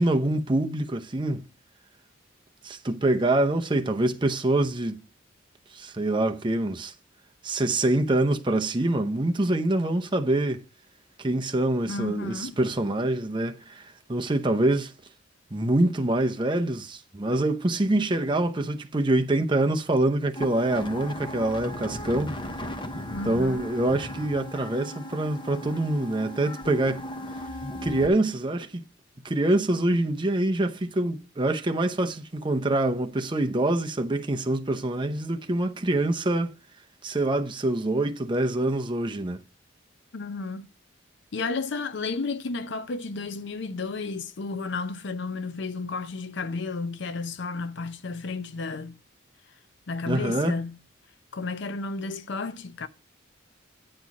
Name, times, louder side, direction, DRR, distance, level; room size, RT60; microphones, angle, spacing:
voice 1, 0.0-1.4 2.6-5.0 5.7-6.9 7.4-10.6 11.2-14.9 15.5-22.3 23.2-27.0 27.8-28.9 29.2-36.5 37.0-39.4 50.1-50.6, right 1 dB, 25° right, 0.7 m, -25 dB
voice 2, 11.9-12.5 23.1-23.7 40.1-40.7 41.3-49.0 49.9-50.8 51.3-52.9, left 3 dB, 60° left, 0.6 m, -32 dB
sound 1, 20.4-28.1, left 1 dB, 25° left, 0.8 m, -37 dB
9.5 x 4.5 x 5.9 m
head